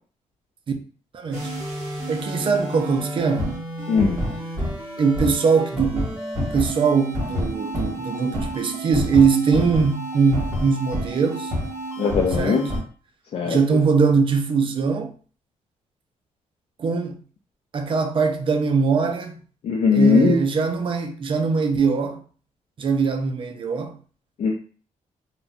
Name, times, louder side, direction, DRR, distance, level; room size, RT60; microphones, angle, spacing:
voice 1, 1.1-1.5 2.1-3.6 5.0-6.1 6.4-11.5 12.4-12.6 13.5-15.1 16.8-17.2 17.7-19.4 19.9-22.2 22.8-24.0, right 5 dB, 45° right, 0.4 m, -21 dB
sound 1, 1.3-12.8, equal, 25° right, 1.3 m, -29 dB
voice 2, 3.9-4.2 12.0-12.7 13.3-13.6 19.6-20.4 24.4-24.5, left 5 dB, 55° left, 0.4 m, -19 dB
2.5 x 2.2 x 3.6 m
wide cardioid pair, 135°, 13 cm